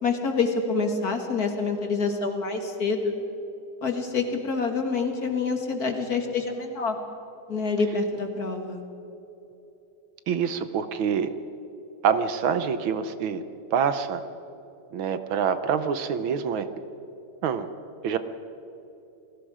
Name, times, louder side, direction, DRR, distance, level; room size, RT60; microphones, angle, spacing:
voice 1, 0.0-3.2 3.8-7.0 7.5-8.8, left 4 dB, 45° left, 4 dB, 2.2 m, -27 dB
voice 2, 10.3-11.3 12.0-13.4 13.7-14.2 14.9-16.7 17.4-17.7 18.0-18.2, right 7 dB, 75° right, 11 dB, 1.7 m, -26 dB
29.0 x 19.0 x 5.0 m, 2.9 s
omnidirectional pair, 2.3 m